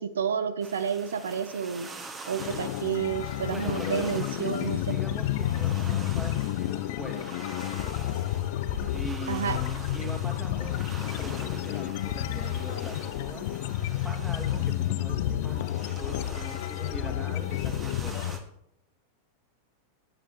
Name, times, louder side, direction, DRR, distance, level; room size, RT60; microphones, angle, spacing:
voice 1, 0.0-1.9 2.3-4.8 9.3-9.6, right 7 dB, 65° right, 13 dB, 0.6 m, -30 dB
sound 1, 0.6-18.4, right 3 dB, 20° right, 1.7 m, -46 dB
sound 2, 2.4-18.4, left 12 dB, 50° left, 0.5 m, -30 dB
voice 2, 3.2-7.4 8.9-10.8 11.2-13.5 14.0-18.3, right 1 dB, 5° right, 3 dB, 2.1 m, -42 dB
17.0 x 9.6 x 3.0 m, 0.77 s
figure-of-eight pair, 90°, 0 cm